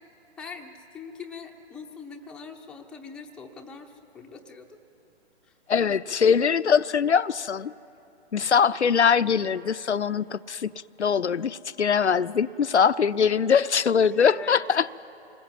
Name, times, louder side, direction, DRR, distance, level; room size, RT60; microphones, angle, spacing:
voice 1, 0.4-4.7 5.4-5.5 14.1-14.6, left 5 dB, 5° left, 2 dB, 0.6 m, -42 dB
voice 2, 5.7-7.7 8.3-10.7 11.0-15.0, left 6 dB, 85° left, 14 dB, 0.6 m, -22 dB
26.0 x 20.5 x 7.5 m, 2.8 s
figure-of-eight pair, 130°, 33 cm